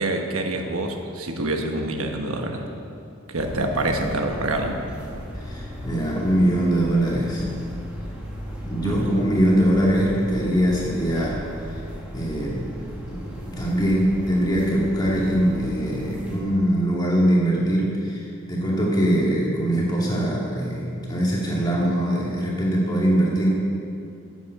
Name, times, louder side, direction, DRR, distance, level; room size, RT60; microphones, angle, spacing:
voice 1, 0.0-2.6 3.3-4.8 8.8-9.2, right 2 dB, 75° right, 3 dB, 1.1 m, -26 dB
sound 1, 3.3-16.4, equal, 5° right, 1.6 m, -36 dB
voice 2, 5.4-7.5 8.6-11.4 12.1-12.7 13.1-23.5, right 1 dB, 20° left, -5 dB, 2.3 m, -22 dB
10.0 x 7.8 x 7.8 m, 2.5 s
head